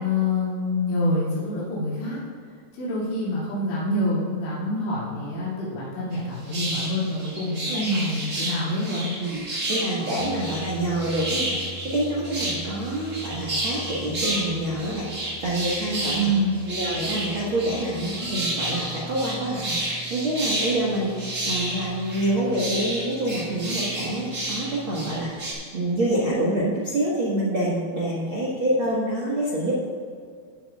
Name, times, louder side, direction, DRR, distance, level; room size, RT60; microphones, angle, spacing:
voice 1, 0.0-2.2 2.8-9.1 10.0-10.3 16.1-16.6, left 1 dB, 90° left, -8 dB, 4.9 m, -26 dB
sound 1, 6.1-6.2 6.5-14.4 14.8-25.5, right 1 dB, 35° right, 1.4 m, -31 dB
sound 2, 9.2-25.2, equal, 70° left, 2.5 m, -42 dB
voice 2, 9.2-16.3 16.7-25.3 25.7-29.8, right 1 dB, 70° right, -7 dB, 1.2 m, -27 dB
18.0 x 8.2 x 2.4 m, 2.1 s
omnidirectional pair, 4.9 m